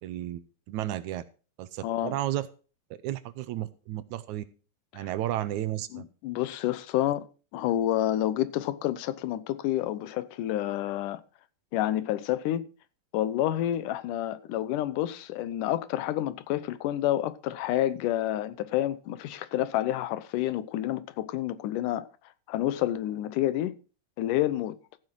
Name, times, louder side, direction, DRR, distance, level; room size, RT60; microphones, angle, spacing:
voice 1, 0.0-1.2 1.6-2.5 3.0-4.4 4.9-6.1, right 13 dB, 75° right, 1.9 m, -33 dB
voice 2, 1.8-2.2 4.9-5.1 5.9-7.3 7.5-11.2 11.7-12.6 13.1-22.1 22.5-23.7 24.2-24.8, left 13 dB, 80° left, 2.3 m, -29 dB
14.0 x 7.7 x 4.6 m
omnidirectional pair, 3.7 m